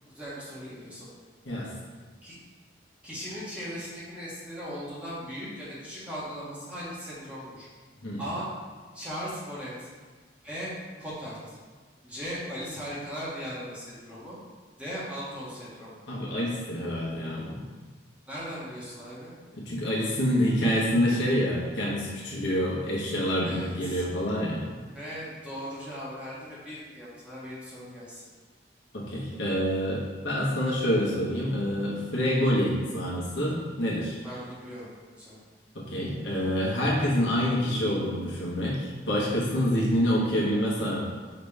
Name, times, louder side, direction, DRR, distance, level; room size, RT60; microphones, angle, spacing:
voice 1, 0.0-1.1 2.2-2.4 3.0-7.7 8.2-8.5 8.9-9.9 10.4-10.7 11.0-11.6 12.0-14.3 14.8-15.9 18.2-19.3 23.4-24.0 24.9-28.2 34.2-34.9 35.2-35.4, equal, 5° right, -9 dB, 1.1 m, -38 dB
voice 2, 16.1-17.6 19.5-24.6 28.9-34.2 35.7-41.0, equal, 70° left, -5 dB, 1.0 m, -27 dB
5.1 x 2.9 x 3.3 m, 1.5 s
head